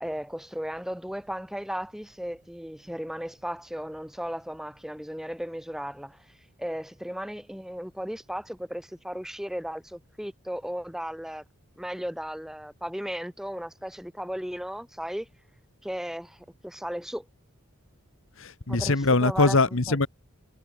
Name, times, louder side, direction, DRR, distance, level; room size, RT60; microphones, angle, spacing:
voice 1, 0.0-6.3 6.6-11.4 11.8-15.3 15.8-17.3 18.7-18.9 19.2-19.6 19.9-20.1, equal, ahead, 0.8 m, -35 dB
voice 2, 18.4-20.1, left 3 dB, 65° left, 1.4 m, -22 dB
head